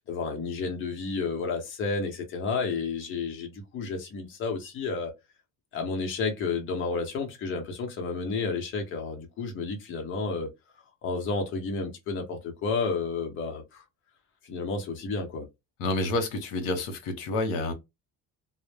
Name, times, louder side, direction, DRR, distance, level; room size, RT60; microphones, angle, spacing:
voice 1, 0.0-5.1 5.7-10.5 11.0-13.8 14.4-15.5, left 4 dB, 40° left, 0.7 m, -31 dB
voice 2, 15.8-17.7, left 2 dB, 80° left, 0.8 m, -29 dB
2.1 x 2.0 x 3.2 m
cardioid pair, 170°, 32 cm